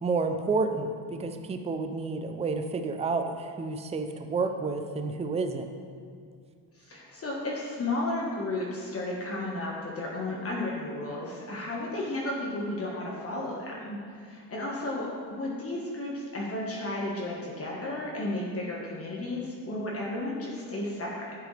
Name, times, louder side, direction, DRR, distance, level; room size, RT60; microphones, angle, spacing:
voice 1, 0.0-5.7, right 4 dB, 15° right, 6 dB, 0.5 m, -30 dB
voice 2, 6.7-21.3, left 2 dB, 30° left, -4 dB, 1.4 m, -33 dB
11.5 x 8.2 x 3.3 m, 2.3 s
cardioid pair, 135°, 43 cm